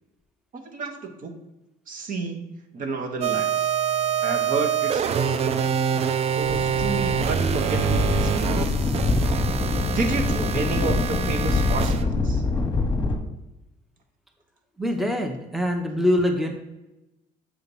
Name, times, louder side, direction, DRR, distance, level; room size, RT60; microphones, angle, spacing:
voice 1, 0.5-1.4 1.9-3.7 4.2-5.6 6.3-8.8 9.9-12.4, right 3 dB, 55° right, 5 dB, 0.9 m, -31 dB
sound 1, 3.2-12.0, right 8 dB, 40° right, 0.4 m, -26 dB
sound 2, 6.4-13.2, left 3 dB, 20° left, 1.0 m, -25 dB
voice 2, 14.8-16.5, left 1 dB, ahead, 4 dB, 0.7 m, -24 dB
7.1 x 2.8 x 5.3 m, 0.96 s
cardioid pair, 110°, 17 cm